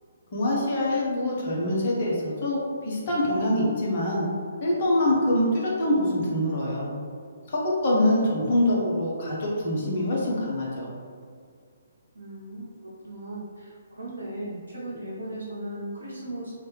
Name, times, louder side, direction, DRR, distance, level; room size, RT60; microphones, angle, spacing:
voice 1, 0.3-4.3 4.6-6.9 7.5-10.9, left 1 dB, 45° left, -5 dB, 1.0 m, -25 dB
voice 2, 12.1-16.5, right 1 dB, 70° right, -8 dB, 0.7 m, -37 dB
3.2 x 2.8 x 3.4 m, 2.2 s
figure-of-eight pair, 135°, 0 cm